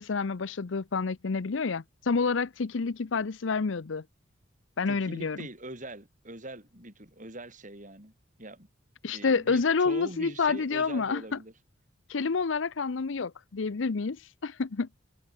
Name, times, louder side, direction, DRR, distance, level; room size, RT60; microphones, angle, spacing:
voice 1, 0.0-4.0 4.8-5.4 9.0-11.2 12.1-14.2 14.4-14.9, left 4 dB, 70° left, 0.6 m, -28 dB
voice 2, 4.9-8.1 8.4-8.7 9.1-11.5, right 1 dB, 40° right, 6.5 m, -43 dB
head